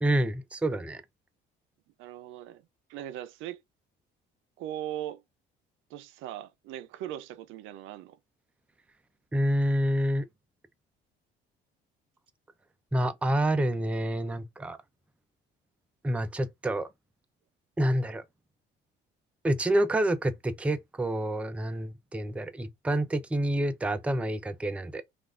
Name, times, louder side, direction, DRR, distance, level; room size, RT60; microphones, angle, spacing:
voice 1, 0.0-1.0 9.3-10.3 12.9-14.8 16.0-16.9 17.8-18.2 19.4-25.0, right 1 dB, 5° right, 0.4 m, -28 dB
voice 2, 2.0-2.6 2.9-3.6 4.6-5.2 5.9-8.2, right 12 dB, 80° right, 0.5 m, -39 dB
3.2 x 2.4 x 2.4 m
cardioid pair, 100°, 20 cm